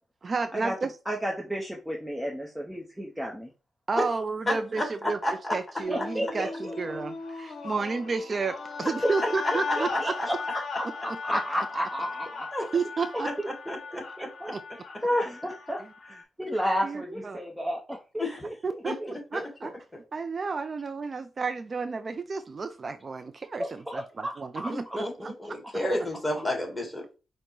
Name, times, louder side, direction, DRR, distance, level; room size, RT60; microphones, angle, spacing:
voice 1, 0.2-0.9 3.9-5.2 5.5-10.1 11.1-11.2 12.7-13.3 16.8-17.4 18.6-19.0 19.3-19.7 20.1-25.3, right 4 dB, 40° right, 0.4 m, -31 dB
voice 2, 1.1-3.5 5.9-7.0 9.0-9.1 9.8-12.5 13.1-19.1 23.6-24.7, equal, 5° right, 0.7 m, -32 dB
voice 3, 4.5-5.6 9.7-9.8 10.2-10.3 12.5-12.7 13.2-13.3 13.7-14.0 17.1-17.2 18.2-18.5 18.9-19.5 24.9-27.1, left 1 dB, 15° left, 1.8 m, -31 dB
sound 1, 5.8-16.2, left 4 dB, 65° left, 0.8 m, -37 dB
5.1 x 2.1 x 4.5 m
cardioid pair, 85°, 0 cm